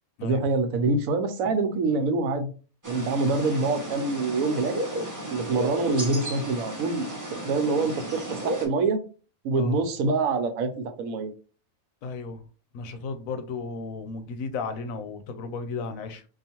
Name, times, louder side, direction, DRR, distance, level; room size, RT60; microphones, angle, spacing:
voice 1, 0.2-2.5 2.8-4.8 5.3-7.1 7.4-9.0 9.4-11.3, right 3 dB, 90° right, 1.1 m, -25 dB
sound 1, 2.8-8.7, right 1 dB, 15° right, 0.8 m, -34 dB
voice 2, 12.0-12.4 12.7-16.3, left 4 dB, 85° left, 1.1 m, -34 dB
4.7 x 2.5 x 2.9 m
omnidirectional pair, 1.4 m